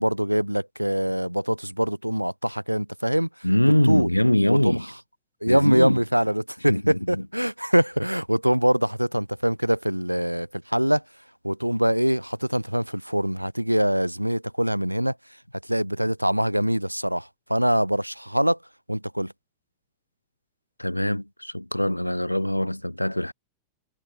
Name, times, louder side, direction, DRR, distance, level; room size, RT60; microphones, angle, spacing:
voice 1, 0.0-3.3 3.6-4.1 4.5-4.8 5.4-11.0 11.4-15.2 15.6-18.6 18.9-19.3, equal, 90° right, 0.9 m, -24 dB
voice 2, 3.4-4.9 5.5-6.0 6.7-7.2 20.8-23.3, left 1 dB, 90° left, 0.4 m, -23 dB
figure-of-eight pair, 90°, 0 cm